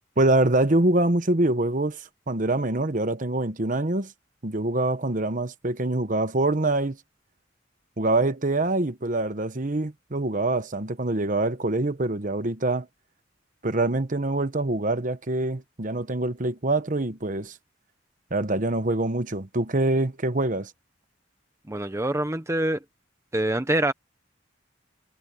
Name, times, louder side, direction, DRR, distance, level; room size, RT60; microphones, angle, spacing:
voice 1, 0.2-2.0 2.3-4.1 4.4-7.0 8.0-12.9 13.6-17.5 18.3-20.7, right 2 dB, 45° right, 1.1 m, -25 dB
voice 2, 21.7-22.8 23.3-23.9, right 1 dB, 15° right, 0.8 m, -25 dB
head